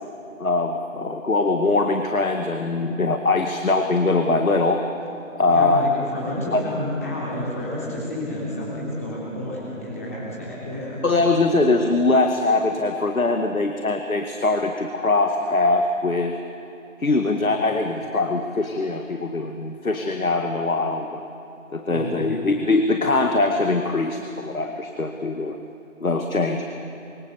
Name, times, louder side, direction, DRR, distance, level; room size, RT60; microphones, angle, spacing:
voice 1, 0.4-4.8 5.4-5.8 6.5-6.6 11.0-16.3 17.0-21.2 21.7-25.6 26.0-26.6, left 3 dB, 90° left, 5 dB, 2.1 m, -22 dB
voice 2, 5.4-11.0 21.9-22.4, left 1 dB, 10° left, -6 dB, 3.2 m, -30 dB
25.0 x 25.0 x 7.2 m, 2.9 s
figure-of-eight pair, 175°, 40 cm